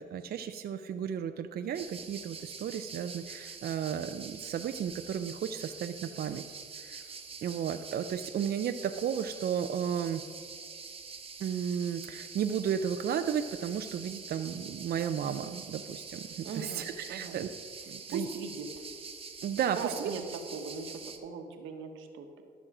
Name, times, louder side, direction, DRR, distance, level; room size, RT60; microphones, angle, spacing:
voice 1, 0.0-6.4 6.8-7.1 7.4-10.2 11.4-17.5 17.9-18.3 19.4-20.1, right 8 dB, 55° right, 8 dB, 0.4 m, -34 dB
sound 1, 1.7-21.2, right 5 dB, 30° right, 1.0 m, -45 dB
voice 2, 16.4-16.8 17.1-17.4 18.1-18.8 19.7-20.2 20.5-22.4, right 5 dB, 85° right, 4 dB, 1.2 m, -39 dB
12.5 x 6.2 x 4.8 m, 2.3 s
cardioid pair, 90°, 20 cm